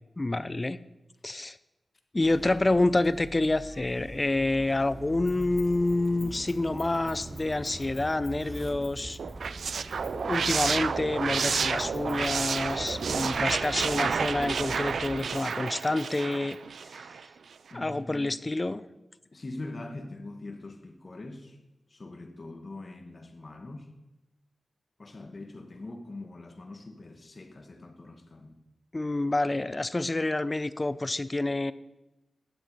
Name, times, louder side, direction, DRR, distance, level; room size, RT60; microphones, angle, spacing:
voice 1, 0.2-0.8 1.2-1.6 2.1-9.2 10.1-16.6 16.9-17.1 17.7-18.8 28.9-31.7, left 2 dB, 30° left, 16 dB, 0.4 m, -28 dB
sound 1, 2.2-15.2, right 2 dB, 35° right, 0.9 m, -42 dB
Keys jangling, 5.2-11.0 11.8-16.6, left 1 dB, 10° left, 3.5 m, -54 dB
sound 2, 9.2-17.2, right 5 dB, 80° right, 0.3 m, -30 dB
voice 2, 17.7-18.3 19.3-21.6 21.9-23.9 25.0-28.6, left 2 dB, 45° left, 5 dB, 1.4 m, -43 dB
10.0 x 7.7 x 5.5 m, 0.98 s
cardioid pair, 60°, 0 cm